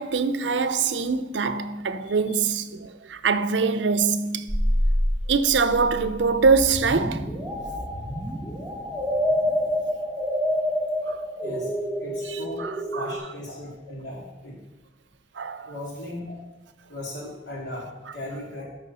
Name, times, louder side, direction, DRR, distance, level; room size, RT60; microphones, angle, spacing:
voice 1, 0.0-4.6 5.3-7.3 11.1-11.2 12.3-13.1 15.4-15.8, right 5 dB, 85° right, 0.6 m, -24 dB
voice 2, 2.0-2.4 11.4-11.7 12.0-12.7 12.9-14.6 15.6-16.3 16.9-18.6, left 1 dB, 70° left, 3.5 m, -37 dB
sound 1, 4.5-13.2, equal, 5° right, 1.7 m, -27 dB
13.0 x 4.5 x 5.5 m
head